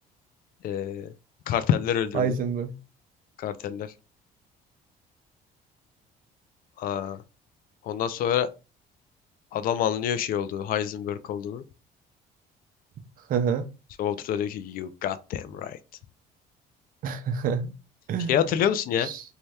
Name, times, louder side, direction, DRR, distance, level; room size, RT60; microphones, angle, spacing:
voice 1, 0.6-1.1 1.5-2.4 3.4-3.9 6.8-7.2 7.8-8.5 9.5-11.6 14.0-15.8 18.3-19.1, left 9 dB, 60° left, 0.4 m, -27 dB
voice 2, 2.1-2.7 13.3-13.7 17.0-17.7 18.1-18.4 19.0-19.2, right 6 dB, 55° right, 0.5 m, -27 dB
2.7 x 2.2 x 3.2 m
cardioid pair, 110°, 17 cm